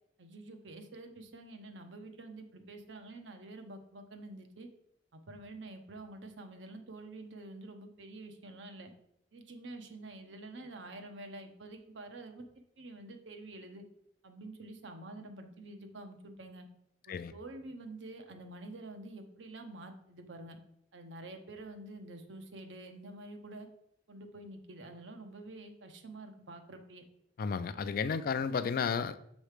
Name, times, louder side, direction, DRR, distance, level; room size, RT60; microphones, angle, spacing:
voice 1, 0.2-4.7 5.1-8.9 9.3-12.5 12.8-13.8 14.2-16.7 17.1-20.6 20.9-23.7 24.1-27.0, right 2 dB, 90° right, 0.8 m, -48 dB
voice 2, 27.4-29.3, left 6 dB, 50° left, 0.3 m, -33 dB
6.4 x 3.1 x 4.9 m
head